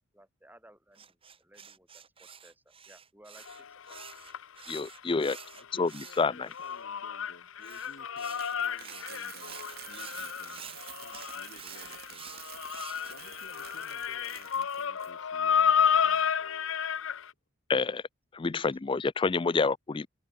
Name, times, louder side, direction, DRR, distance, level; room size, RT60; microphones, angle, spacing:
voice 1, 0.0-4.0, right 1 dB, 10° right, 4.4 m, -59 dB
sound 1, 1.0-6.8 7.6-13.1, right 7 dB, 25° right, 2.9 m, -49 dB
sound 2, 3.5-5.5 5.7-17.3, left 7 dB, 70° left, 0.6 m, -31 dB
voice 2, 4.7-5.4 5.7-6.5 17.7-18.0 18.3-20.1, left 4 dB, 25° left, 0.3 m, -28 dB
voice 3, 5.5-12.4 13.1-16.7, left 1 dB, 55° left, 4.6 m, -56 dB
Coin (dropping), 7.7-15.1, right 11 dB, 50° right, 3.9 m, -48 dB
head